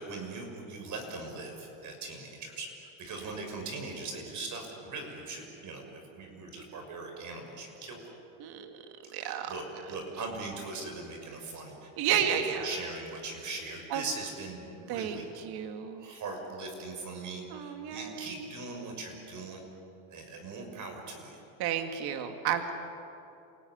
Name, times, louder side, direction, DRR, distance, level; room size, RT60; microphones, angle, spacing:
voice 1, 0.0-8.0 9.1-15.3 16.0-19.6 20.1-21.4, right 3 dB, 40° right, 3 dB, 6.3 m, -40 dB
voice 2, 8.4-8.7 9.1-9.5 12.0-12.7 13.9-14.0 14.9-16.1 17.5-18.4 21.6-22.7, right 9 dB, 60° right, 6 dB, 2.2 m, -32 dB
28.5 x 18.0 x 9.6 m, 2.9 s
supercardioid pair, 120°, 44 cm